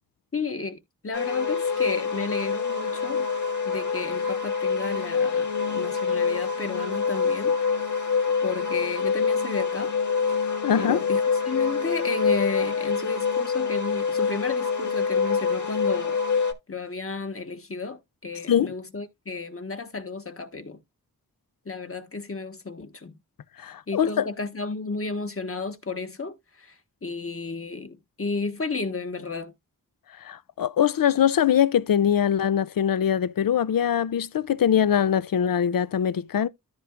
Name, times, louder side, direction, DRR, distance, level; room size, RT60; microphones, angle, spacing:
voice 1, 0.3-0.8 1.0-3.3 3.6-7.8 8.4-9.9 10.3-10.4 10.7-20.8 21.6-23.2 23.9-29.5, left 3 dB, 40° left, 1.4 m, -33 dB
sound 1, 1.1-16.5, left 5 dB, 55° left, 2.0 m, -26 dB
voice 2, 10.6-11.0 18.5-18.7 23.6-24.3 30.2-36.5, left 9 dB, 75° left, 0.6 m, -22 dB
13.5 x 4.6 x 2.5 m
wide cardioid pair, 70°, 34 cm